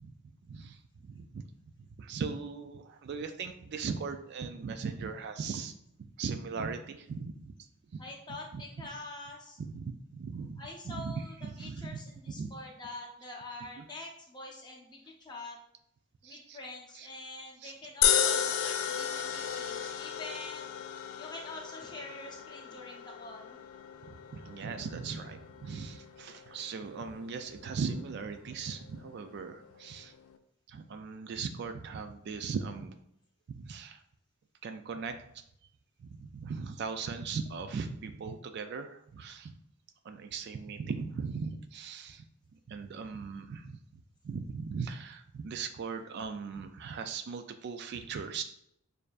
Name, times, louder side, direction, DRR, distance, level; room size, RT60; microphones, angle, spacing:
voice 1, 0.0-7.5 7.9-8.0 8.3-8.6 9.6-12.0 12.3-12.6 13.8-13.9 16.2-16.6 16.9-17.1 17.6-17.7 18.6-18.7 19.0-20.0 24.0-30.1 30.7-33.0 33.6-34.0 34.6-35.4 36.0-39.5 40.0-42.2 42.5-48.4, right 5 dB, 50° right, 8 dB, 0.3 m, -39 dB
voice 2, 8.0-9.6 10.6-15.6 16.2-20.7 21.2-23.6, left 2 dB, 20° left, -1 dB, 0.8 m, -45 dB
sound 1, 18.0-30.4, left 9 dB, 75° left, 0.4 m, -35 dB
6.5 x 2.6 x 2.4 m, 0.76 s
head